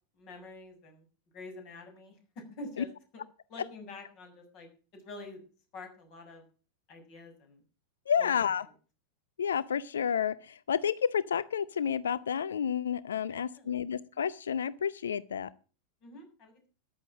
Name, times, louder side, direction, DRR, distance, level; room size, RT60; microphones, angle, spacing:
voice 1, 0.1-1.1 1.3-3.2 3.5-5.4 5.7-6.4 6.9-7.6 8.2-8.3 13.3-13.8 16.0-16.7, left 2 dB, 40° left, 5 dB, 6.8 m, -47 dB
voice 2, 8.1-8.6 9.4-15.5, left 7 dB, 65° left, 19 dB, 0.6 m, -30 dB
14.0 x 10.5 x 6.2 m, 0.37 s
figure-of-eight pair, 90°, 0 cm